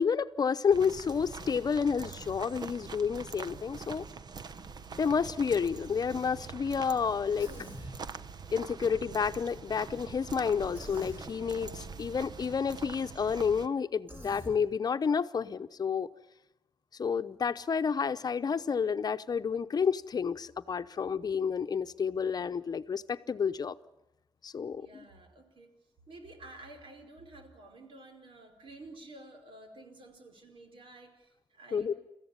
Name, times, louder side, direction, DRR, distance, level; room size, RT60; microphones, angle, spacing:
voice 1, 0.0-4.0 5.0-7.5 8.5-16.1 17.0-23.8 24.4-25.0 31.7-31.9, left 6 dB, 50° left, 11 dB, 0.8 m, -30 dB
sound 1, 0.7-13.7, right 5 dB, 50° right, 1.0 m, -44 dB
Human voice, 7.4-8.0 10.7-11.2 14.1-14.6, equal, 25° right, 6.2 m, -45 dB
voice 2, 24.8-25.7 26.1-32.0, right 2 dB, 85° right, 5 dB, 4.9 m, -51 dB
30.0 x 15.0 x 9.8 m, 0.91 s
wide cardioid pair, 130°, 9 cm